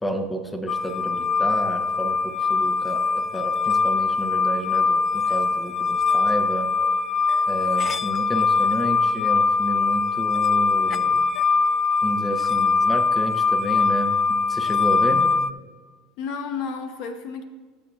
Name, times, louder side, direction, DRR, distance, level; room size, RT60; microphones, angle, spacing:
voice 1, 0.0-6.7 7.5-11.2 12.0-14.2 14.5-15.3, right 1 dB, 10° left, 6 dB, 1.1 m, -31 dB
sound 1, 0.7-15.5, left 4 dB, 40° left, 0.4 m, -22 dB
voice 2, 15.0-15.4 16.2-17.4, left 5 dB, 65° left, 7 dB, 0.8 m, -32 dB
17.5 x 7.1 x 2.5 m, 1.4 s
supercardioid pair, 95°, 0 cm